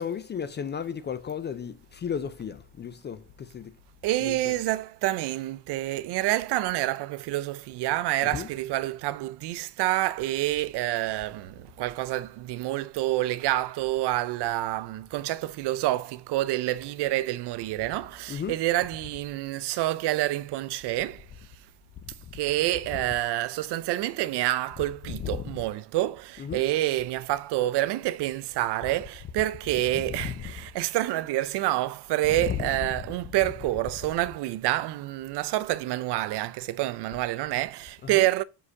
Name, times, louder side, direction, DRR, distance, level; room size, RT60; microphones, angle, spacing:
voice 1, 0.0-3.7 4.2-4.6 8.2-8.5 18.3-18.6 22.9-23.0 25.0-25.6 26.4-26.7 29.4-29.5 29.7-30.6 32.4-32.9 33.4-33.5 38.0-38.2, left 8 dB, 25° left, 0.4 m, -34 dB
voice 2, 4.0-21.3 22.3-38.4, right 16 dB, 65° right, 0.6 m, -28 dB
4.9 x 4.8 x 6.2 m
cardioid pair, 150°, 44 cm